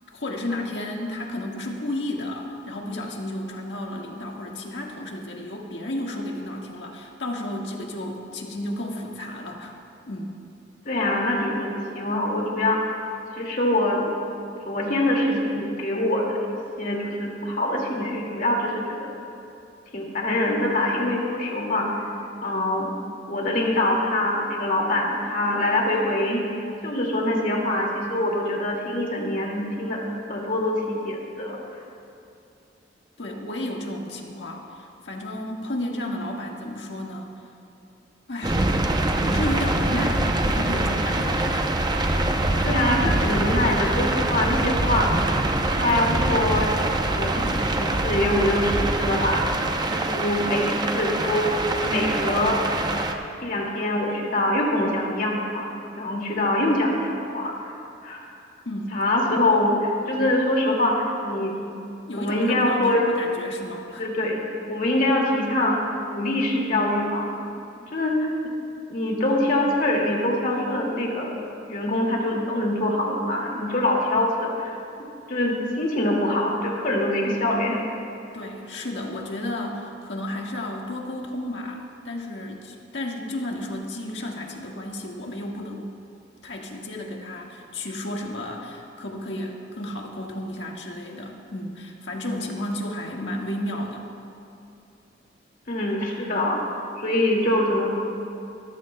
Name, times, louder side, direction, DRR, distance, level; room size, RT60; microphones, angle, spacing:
voice 1, 0.1-9.7 10.0-10.4 33.2-37.4 38.3-38.8 39.2-41.7 58.6-59.0 62.1-64.0 78.3-85.9 86.4-94.1, left 1 dB, 70° left, 0 dB, 1.7 m, -32 dB
voice 2, 10.9-13.0 13.4-14.1 14.7-16.4 16.8-19.1 19.9-21.9 22.4-22.9 23.3-26.5 26.8-30.0 30.3-31.6 42.6-45.1 45.7-46.7 47.1-49.5 49.9-52.6 53.4-57.5 58.0-58.3 58.9-61.5 62.1-63.1 63.9-64.4 64.7-65.8 66.1-67.3 67.8-68.3 68.9-71.3 71.7-74.8 75.3-77.8 95.7-96.6 97.0-98.0, left 1 dB, 50° left, -1 dB, 2.3 m, -24 dB
sound 1, 38.4-53.1, right 2 dB, 25° right, 0.7 m, -24 dB
23.5 x 14.0 x 2.3 m, 2.6 s
head